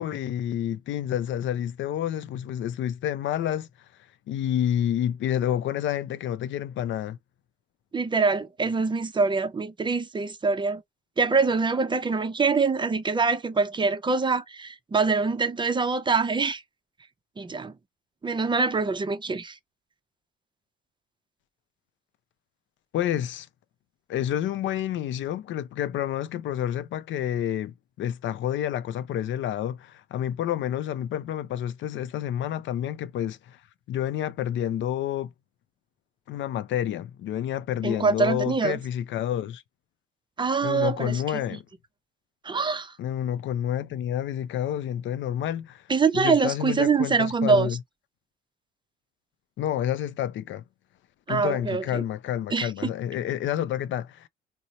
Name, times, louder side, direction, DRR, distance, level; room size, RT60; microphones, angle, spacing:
voice 1, 0.0-3.7 4.3-7.2 22.9-23.5 24.1-33.6 33.9-35.3 36.3-39.6 40.6-41.6 43.0-45.9 46.1-47.8 49.6-50.6 51.3-54.3, left 11 dB, 70° left, 0.5 m, -29 dB
voice 2, 7.9-10.8 11.2-16.6 17.4-17.7 18.2-19.6 37.8-38.8 40.4-41.4 42.4-42.9 45.9-47.7 51.3-52.0 52.5-52.9, right 4 dB, 25° right, 0.5 m, -24 dB
2.8 x 2.1 x 3.8 m
cardioid pair, 90°, 20 cm